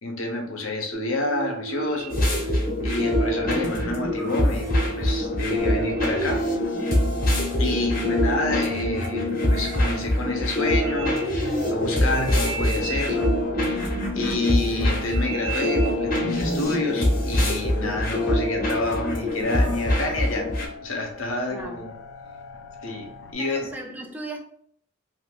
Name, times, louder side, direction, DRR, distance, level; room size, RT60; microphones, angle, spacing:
voice 1, 0.0-2.6 2.8-6.4 7.6-13.3 13.6-13.9 14.1-20.5 20.8-21.9 22.8-23.7, left 2 dB, 80° left, 2 dB, 0.7 m, -29 dB
sound 1, 0.9-16.7, right 1 dB, 85° right, 0.5 m, -35 dB
sound 2, 2.1-20.7, left 1 dB, 45° left, 0.8 m, -24 dB
sound 3, 4.9-23.3, left 5 dB, 65° left, 0.4 m, -42 dB
voice 2, 7.7-8.2 21.5-21.8 23.4-24.4, right 2 dB, 10° right, 2 dB, 0.4 m, -37 dB
2.5 x 2.5 x 3.5 m, 0.65 s
head